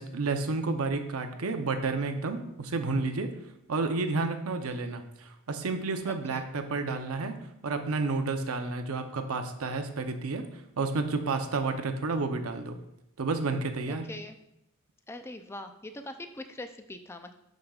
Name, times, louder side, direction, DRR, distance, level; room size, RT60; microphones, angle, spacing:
voice 1, 0.0-3.3 3.7-7.4 7.6-10.4 10.8-12.8 13.2-14.0, right 3 dB, 90° right, 7 dB, 0.7 m, -30 dB
voice 2, 6.1-6.4 14.1-14.4 15.1-17.3, left 1 dB, 10° left, 7 dB, 0.4 m, -42 dB
11.5 x 5.0 x 2.4 m, 0.82 s
head